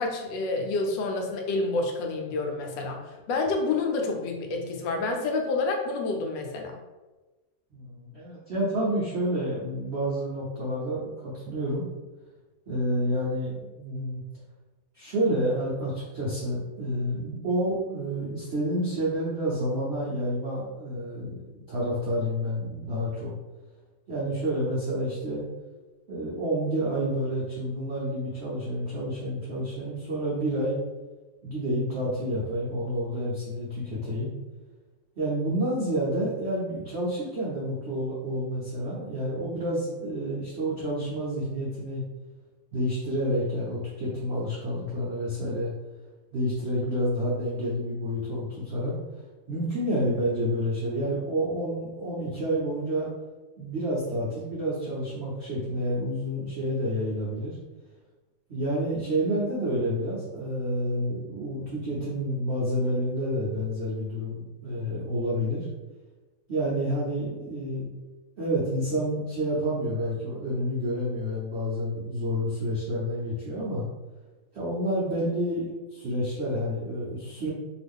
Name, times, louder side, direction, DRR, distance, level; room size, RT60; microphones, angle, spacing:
voice 1, 0.0-3.0 3.3-6.8, left 3 dB, 80° left, 2 dB, 1.2 m, -28 dB
voice 2, 7.7-11.8 12.7-14.2 14.9-23.3 24.1-25.4 26.1-30.8 31.4-34.3 35.2-42.0 42.7-45.7 46.3-48.9 49.5-53.1 53.6-57.6 58.5-65.7 66.5-67.9 68.4-73.8 74.5-77.5, equal, 80° right, -6 dB, 0.6 m, -29 dB
2.9 x 2.4 x 3.4 m, 1.2 s
omnidirectional pair, 2.0 m